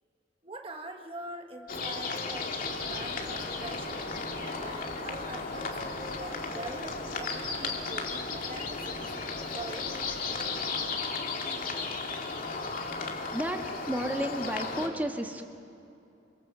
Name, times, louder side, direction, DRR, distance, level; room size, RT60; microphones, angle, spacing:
voice 1, 0.4-4.0 4.6-5.7 6.2-9.2 9.5-9.9, right 2 dB, 30° right, 3 dB, 1.5 m, -43 dB
sound 1, 1.7-14.9, left 4 dB, 50° left, 2.5 m, -35 dB
sound 2, 2.6-10.7, equal, 90° right, 6.2 m, -49 dB
voice 2, 13.3-15.4, equal, 10° right, 3 dB, 1.6 m, -32 dB
27.5 x 25.0 x 7.5 m, 2.6 s
head